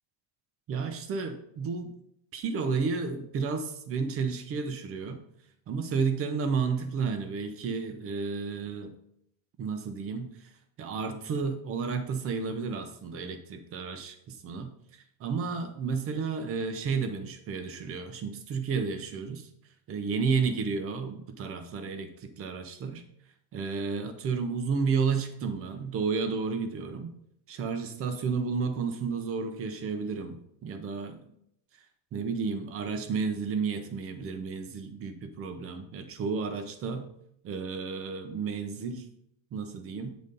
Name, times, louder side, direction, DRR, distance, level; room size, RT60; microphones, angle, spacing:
voice 1, 0.7-1.9 2.3-5.2 5.7-8.9 9.6-10.5 10.8-19.5 19.9-23.0 23.5-27.1 27.5-31.1 32.1-37.1 37.4-39.0 39.5-40.1, right 5 dB, 30° right, 8 dB, 0.8 m, -32 dB
8.3 x 4.0 x 5.3 m, 0.73 s
cardioid pair, 170°, 46 cm